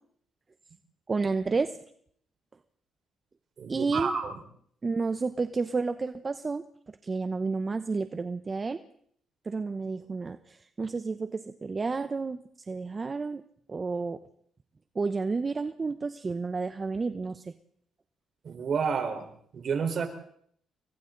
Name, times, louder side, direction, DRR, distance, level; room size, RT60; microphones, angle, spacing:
voice 1, 1.1-1.8 3.7-4.1 4.8-6.6 7.0-8.8 9.5-12.4 12.7-13.4 13.7-14.2 14.9-17.5, right 4 dB, 30° right, 10 dB, 1.0 m, -31 dB
voice 2, 3.6-4.3 18.4-19.3 19.5-20.1, right 5 dB, 55° right, 5 dB, 4.4 m, -30 dB
29.5 x 23.0 x 4.0 m, 0.66 s
cardioid pair, 90°, 0 cm